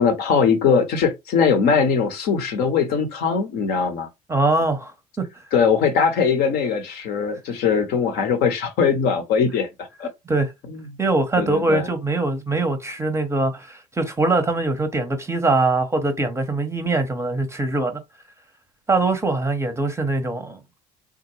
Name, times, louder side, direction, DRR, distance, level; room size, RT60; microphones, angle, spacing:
voice 1, 0.0-4.1 5.5-9.7 10.0-10.1 10.7-10.8 11.4-11.9, left 6 dB, 50° left, 0.9 m, -20 dB
voice 2, 4.3-4.9 5.2-5.3 10.3-10.5 11.0-18.0 18.9-20.6, right 2 dB, 15° right, 0.7 m, -22 dB
3.5 x 2.2 x 3.1 m
figure-of-eight pair, 60°, 20 cm